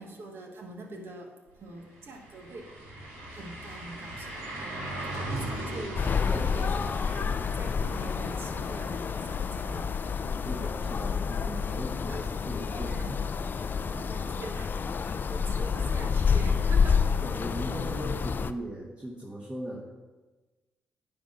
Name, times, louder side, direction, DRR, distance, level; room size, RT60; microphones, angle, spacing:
voice 1, 0.0-2.7 3.3-4.5 5.1-6.3 6.5-10.0 12.1-12.3 12.7-13.2 13.8-14.7 15.0-17.1, right 2 dB, 55° right, 3 dB, 1.5 m, -44 dB
sound 1, 1.5-1.6 1.9-11.7 12.1-12.2 14.9-15.0, right 1 dB, 85° right, 2.2 m, -40 dB
sound 2, 6.0-18.5, left 6 dB, 45° left, 0.4 m, -29 dB
voice 2, 10.4-13.2 13.9-14.1 17.2-19.8, right 1 dB, 20° right, -2 dB, 1.5 m, -39 dB
9.3 x 4.0 x 6.3 m, 1.2 s
hypercardioid pair, 45°, 5 cm